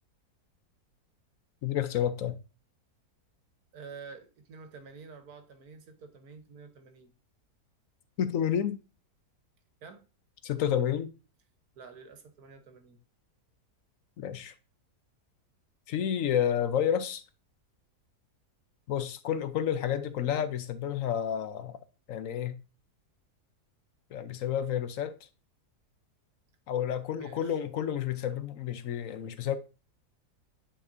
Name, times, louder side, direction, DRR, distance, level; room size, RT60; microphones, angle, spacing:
voice 1, 1.6-2.4 8.2-8.8 10.4-11.1 14.2-14.5 15.9-17.2 18.9-21.8 22.1-22.6 24.1-25.2 26.7-29.6, left 9 dB, 65° left, 1.0 m, -30 dB
voice 2, 3.7-7.1 9.8-10.0 11.8-13.0 27.2-27.6, right 5 dB, 70° right, 1.5 m, -49 dB
10.0 x 4.3 x 2.6 m
omnidirectional pair, 1.7 m